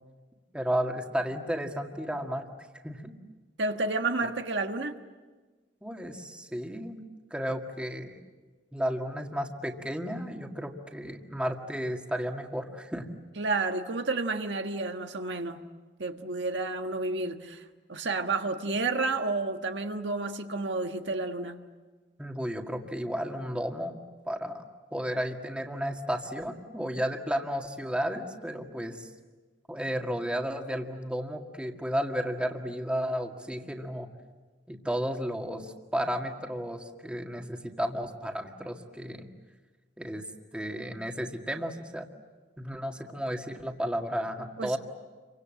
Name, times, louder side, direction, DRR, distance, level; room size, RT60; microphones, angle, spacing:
voice 1, 0.5-2.5 2.8-3.1 5.8-7.0 7.3-8.2 8.7-13.1 22.2-24.0 24.3-24.6 24.9-29.1 29.7-34.1 34.7-39.3 40.0-40.2 40.5-42.1 42.6-44.8, equal, 5° right, 3 dB, 1.9 m, -33 dB
voice 2, 3.6-5.0 13.4-15.6 16.0-17.6 17.9-21.6 44.6-44.8, right 3 dB, 85° right, 5 dB, 1.5 m, -30 dB
29.0 x 24.5 x 7.7 m, 1.3 s
head